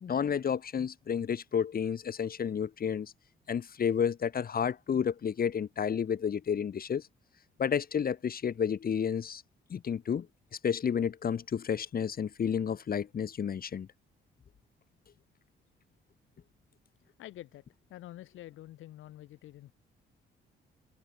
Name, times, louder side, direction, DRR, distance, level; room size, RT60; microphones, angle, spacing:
voice 1, 0.0-3.1 3.5-7.0 7.6-9.4 9.7-10.3 10.6-13.9, left 7 dB, 50° left, 2.0 m, -31 dB
voice 2, 17.0-19.7, left 14 dB, 85° left, 3.0 m, -48 dB
cardioid pair, 90°, 20 cm